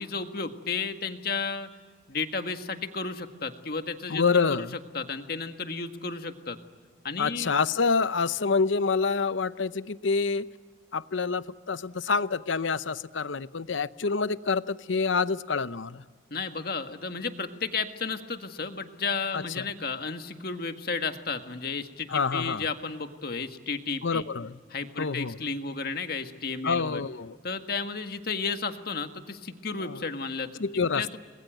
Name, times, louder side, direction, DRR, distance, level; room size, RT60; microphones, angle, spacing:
voice 1, 0.0-1.7 2.1-4.7 4.9-6.6 7.0-7.5 16.3-24.2 24.7-27.0 27.4-30.6 30.9-31.2, left 4 dB, 50° left, 7 dB, 1.8 m, -33 dB
voice 2, 4.1-4.7 7.2-10.5 10.9-16.0 19.3-19.7 22.1-22.6 24.0-24.6 25.0-25.4 26.6-27.4 29.8-30.0 30.6-31.0, left 4 dB, 80° left, 15 dB, 0.8 m, -27 dB
30.0 x 21.5 x 9.2 m, 1.5 s
head